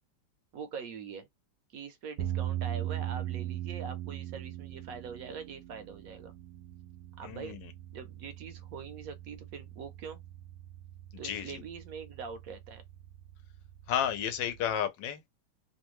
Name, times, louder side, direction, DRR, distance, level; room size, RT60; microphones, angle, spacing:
voice 1, 0.5-1.3 1.7-6.3 7.2-7.6 7.9-10.2 11.2-12.8, right 6 dB, 65° right, 0.9 m, -43 dB
sound 1, 2.2-14.7, right 12 dB, 90° right, 1.2 m, -40 dB
voice 2, 7.2-7.7 11.1-11.6 13.9-15.3, left 9 dB, 85° left, 1.4 m, -32 dB
3.2 x 2.2 x 3.0 m
omnidirectional pair, 1.9 m